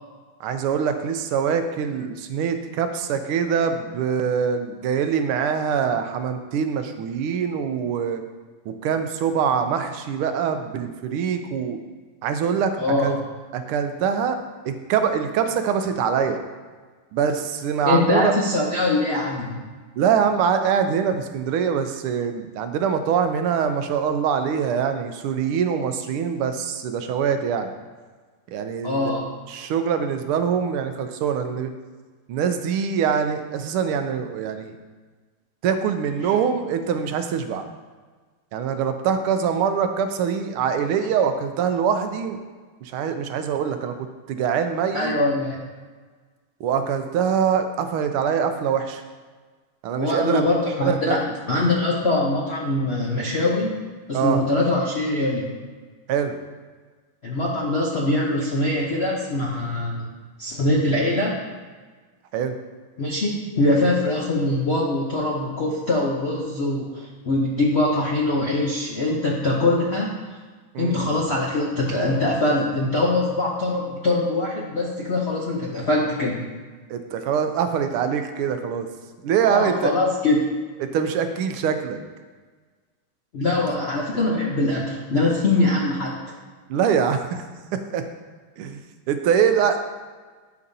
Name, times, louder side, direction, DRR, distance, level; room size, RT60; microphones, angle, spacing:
voice 1, 0.4-8.2 8.7-11.8 12.2-12.7 13.0-13.2 13.5-14.4 14.6-16.4 17.1-18.3 20.0-27.7 28.5-29.2 29.5-31.7 32.3-34.8 35.6-37.6 38.5-42.4 42.8-45.1 46.6-49.0 49.8-50.4 50.8-51.2 54.1-54.4 56.1-56.4 62.3-62.5 70.7-71.0 76.9-78.9 79.2-79.9 80.8-82.0 86.7-87.4 87.9-88.0 88.6-88.8 89.1-89.8, right 7 dB, 90° right, 7 dB, 1.5 m, -24 dB
voice 2, 12.7-13.1 17.8-19.7 28.8-29.3 36.2-36.3 44.9-45.6 50.0-55.5 57.2-60.1 60.4-61.4 63.0-70.1 70.8-76.4 79.4-80.4 83.3-86.1, left 2 dB, 65° left, -4 dB, 0.6 m, -23 dB
11.0 x 5.3 x 2.7 m, 1.4 s
omnidirectional pair, 2.3 m